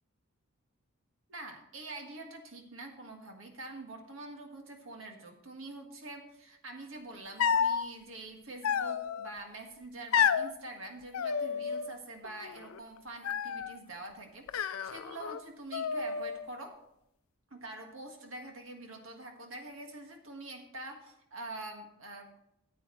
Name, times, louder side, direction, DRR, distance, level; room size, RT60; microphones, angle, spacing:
voice 1, 1.3-16.8 17.5-22.3, right 2 dB, 75° right, 4 dB, 1.6 m, -45 dB
sound 1, 7.4-7.8 8.6-9.3 10.1-10.5 11.1-12.0 12.2-12.8 13.2-13.8 14.5-15.4 15.7-16.5, left 7 dB, 90° left, 0.5 m, -30 dB
14.0 x 8.5 x 3.1 m, 0.82 s
head